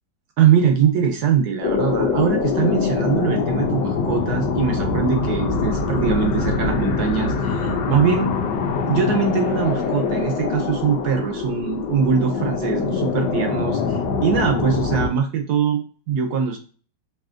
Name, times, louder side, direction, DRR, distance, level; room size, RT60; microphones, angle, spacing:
voice 1, 0.4-8.3 8.9-16.6, right 7 dB, 70° right, 3 dB, 1.1 m, -22 dB
sound 1, 1.6-15.1, left 5 dB, 80° left, 1.3 m, -23 dB
4.9 x 2.8 x 2.4 m, 0.40 s
omnidirectional pair, 2.0 m